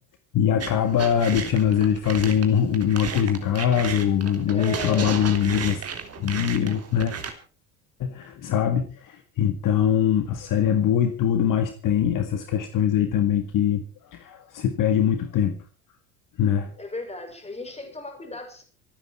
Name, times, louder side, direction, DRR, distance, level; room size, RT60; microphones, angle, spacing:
voice 1, 0.3-5.8 6.2-7.1 8.0-13.8 14.1-15.6 16.4-16.7, left 9 dB, 45° left, 8 dB, 1.9 m, -22 dB
sound 1, 0.6-7.3, right 6 dB, 35° right, 3.6 m, -34 dB
voice 2, 4.5-5.1 16.8-18.6, left 2 dB, 15° left, 5 dB, 6.7 m, -35 dB
26.0 x 9.8 x 4.6 m, 0.37 s
hypercardioid pair, 75°, 44 cm